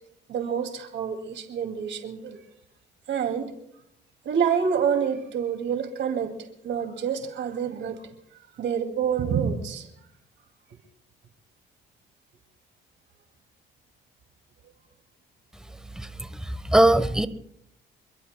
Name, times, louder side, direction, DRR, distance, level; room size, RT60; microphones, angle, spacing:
voice 1, 0.3-2.4 3.1-3.5 4.2-8.1 8.6-9.9, right 7 dB, 70° right, 5 dB, 2.4 m, -27 dB
voice 2, 16.0-17.3, right 1 dB, 5° right, 12 dB, 1.0 m, -21 dB
28.0 x 23.0 x 2.2 m, 0.75 s
cardioid pair, 90°, 20 cm